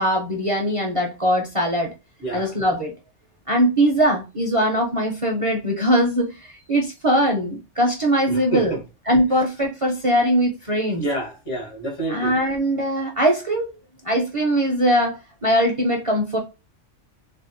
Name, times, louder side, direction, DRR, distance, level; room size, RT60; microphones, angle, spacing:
voice 1, 0.0-1.9 2.3-2.9 3.5-6.3 6.7-8.8 9.1-11.0 12.1-13.7 14.0-16.4, equal, 40° right, 0.5 m, -21 dB
voice 2, 2.2-2.5 8.3-8.8 11.0-12.3, right 2 dB, 80° left, 1.6 m, -28 dB
3.4 x 2.2 x 2.5 m
omnidirectional pair, 1.2 m